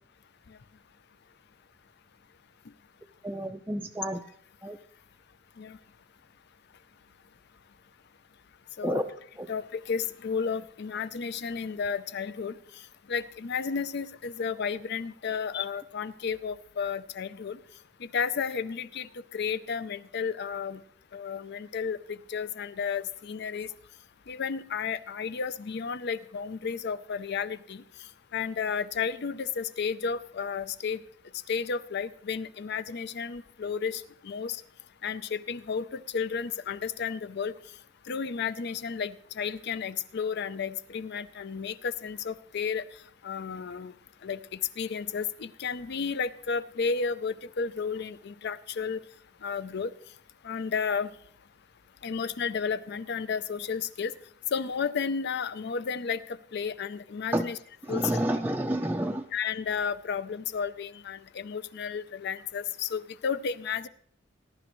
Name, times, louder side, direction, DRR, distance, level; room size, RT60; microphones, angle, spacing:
voice 1, 3.2-4.2 4.6-4.8 8.8-9.0 9.4-9.5 57.3-57.5 57.8-59.2, right 1 dB, 10° right, 2 dB, 0.4 m, -29 dB
voice 2, 9.5-12.5 13.1-17.6 18.0-20.8 21.1-23.7 24.3-27.8 28.3-31.0 31.5-34.6 35.0-37.5 38.1-42.8 43.2-43.9 44.2-49.0 49.4-49.9 50.4-51.1 52.0-54.1 54.5-57.6 57.9-58.1 59.3-63.9, left 6 dB, 60° left, 14 dB, 0.5 m, -32 dB
19.0 x 11.0 x 3.1 m, 0.63 s
head